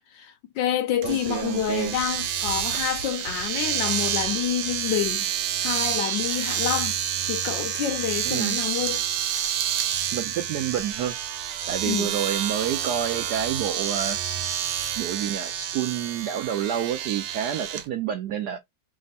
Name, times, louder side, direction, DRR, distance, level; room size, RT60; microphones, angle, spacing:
voice 1, 0.1-5.3 5.6-7.0 7.3-9.0 11.9-12.1, left 10 dB, 75° left, 1.2 m, -28 dB
voice 2, 1.0-2.0 8.3-8.6 10.1-11.2 11.7-14.4 15.0-18.6, right 9 dB, 70° right, 1.0 m, -29 dB
Domestic sounds home sounds, 1.0-17.8, right 10 dB, 90° right, 1.4 m, -29 dB
3.5 x 2.1 x 4.0 m
omnidirectional pair, 2.2 m